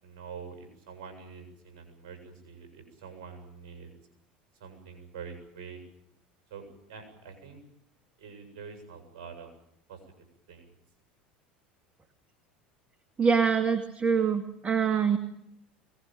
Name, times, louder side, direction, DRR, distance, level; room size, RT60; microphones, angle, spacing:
voice 1, 0.0-3.9 4.6-5.8 6.5-7.6 8.2-9.5 9.9-10.0 10.5-10.7, right 6 dB, 65° right, 6 dB, 7.5 m, -45 dB
voice 2, 13.2-15.2, right 6 dB, 25° right, 8 dB, 2.1 m, -25 dB
24.0 x 20.0 x 9.2 m, 0.77 s
hypercardioid pair, 80°, 5 cm